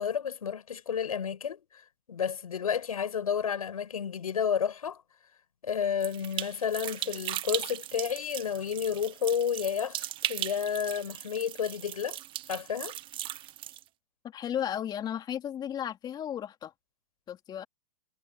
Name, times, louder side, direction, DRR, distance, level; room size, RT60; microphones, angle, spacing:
voice 1, 0.0-1.8 2.1-5.0 5.6-12.2 12.5-12.9, left 7 dB, 90° left, 6.0 m, -31 dB
sound 1, 6.0-13.8, right 14 dB, 30° right, 1.2 m, -38 dB
voice 2, 14.2-16.7 17.3-17.6, left 10 dB, 25° left, 3.3 m, -34 dB
hypercardioid pair, 130°, 18 cm